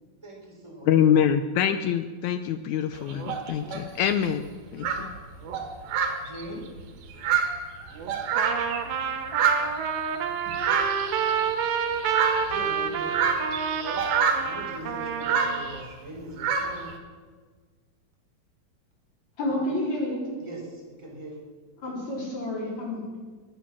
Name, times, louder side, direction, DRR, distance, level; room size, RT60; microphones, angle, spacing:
voice 1, 0.2-0.9 6.3-6.6 12.4-13.2 14.4-16.9 19.5-19.6 20.4-21.4, right 1 dB, 10° right, -3 dB, 3.9 m, -40 dB
voice 2, 0.8-4.5 4.7-5.1, left 9 dB, 90° left, 9 dB, 1.6 m, -24 dB
sound 1, 3.0-3.8 4.5-4.6 4.8-8.9 9.3-15.9 16.4-16.9, right 6 dB, 85° right, 3.4 m, -28 dB
Trumpet, 8.3-15.7, right 7 dB, 65° right, 2.3 m, -29 dB
voice 3, 19.4-20.3 21.8-23.0, left 1 dB, 50° left, -3 dB, 5.1 m, -29 dB
23.5 x 9.0 x 6.2 m, 1.5 s
omnidirectional pair, 4.1 m